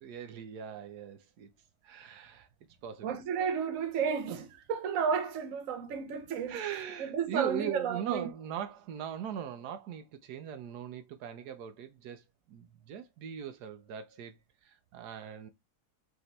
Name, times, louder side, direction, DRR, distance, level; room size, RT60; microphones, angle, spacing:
voice 1, 0.0-1.5 1.8-2.5 2.8-3.2 6.5-15.5, right 9 dB, 80° right, 1.2 m, -40 dB
voice 2, 3.0-6.6 7.0-8.3, right 6 dB, 60° right, 1.1 m, -32 dB
4.9 x 2.9 x 3.1 m
omnidirectional pair, 1.7 m